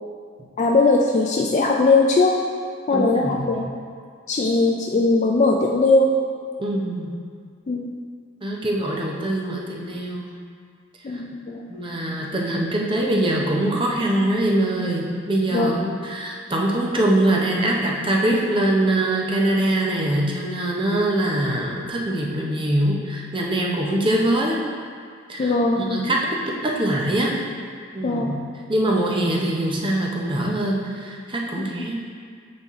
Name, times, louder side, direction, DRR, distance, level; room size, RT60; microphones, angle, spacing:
voice 1, 0.6-2.4 2.9-3.7 4.3-6.1 7.7-7.9 11.0-11.7 15.5-15.7 25.4-26.0 28.0-28.3 31.8-31.9, left 3 dB, 35° left, 0 dB, 0.3 m, -19 dB
voice 2, 2.9-3.5 6.6-7.1 8.4-10.3 11.1-11.2 11.7-24.6 25.3-26.3 26.6-27.4 27.9-28.4 28.7-32.0, right 1 dB, 25° right, -1 dB, 0.7 m, -23 dB
7.0 x 4.2 x 3.6 m, 2.1 s
head